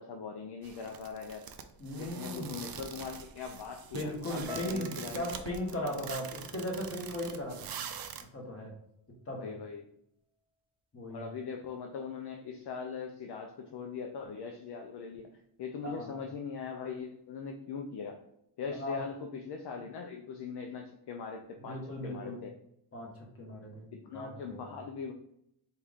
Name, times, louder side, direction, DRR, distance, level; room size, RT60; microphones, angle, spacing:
voice 1, 0.0-1.5 2.0-5.4 9.4-9.9 11.1-18.2 18.6-22.5 23.9-25.1, left 5 dB, 55° left, 3 dB, 0.5 m, -41 dB
sound 1, 0.6-8.2, right 8 dB, 50° right, 0.4 m, -44 dB
voice 2, 1.8-2.5 3.9-7.8 8.3-8.7 9.3-9.6 10.9-11.3 15.8-16.2 18.8-19.0 21.6-22.4 22.9-23.9 24.1-24.6, left 1 dB, 30° left, -1 dB, 1.2 m, -38 dB
sound 2, 4.5-8.7 8.9-9.7 10.3-10.5, equal, 10° right, 0.8 m, -52 dB
4.5 x 2.4 x 3.5 m, 0.75 s
wide cardioid pair, 130°, 47 cm